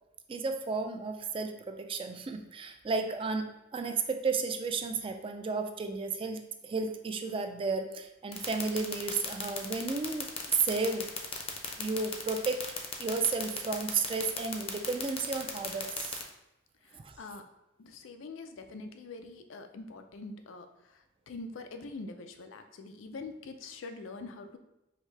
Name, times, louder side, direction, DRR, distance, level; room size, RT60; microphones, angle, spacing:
voice 1, 0.3-3.5 3.7-10.3 10.6-11.1 11.8-12.6 13.0-16.2 17.0-17.1, right 4 dB, 30° right, 6 dB, 0.3 m, -33 dB
sound 1, 8.3-16.2, left 7 dB, 30° left, 0.5 m, -35 dB
voice 2, 16.8-17.4 17.8-24.6, left 3 dB, 90° left, 6 dB, 0.4 m, -44 dB
4.9 x 2.7 x 3.2 m, 0.91 s
head